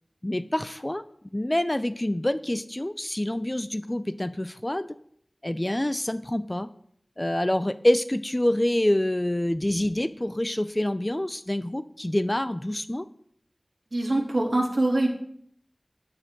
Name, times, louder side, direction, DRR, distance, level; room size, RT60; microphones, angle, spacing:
voice 1, 0.2-1.0 1.3-4.9 5.4-6.7 7.2-13.1, left 1 dB, 25° left, 13 dB, 0.5 m, -26 dB
voice 2, 13.9-15.1, right 2 dB, 65° right, -1 dB, 3.2 m, -23 dB
14.0 x 11.5 x 3.9 m, 0.68 s
wide cardioid pair, 50°, 0 cm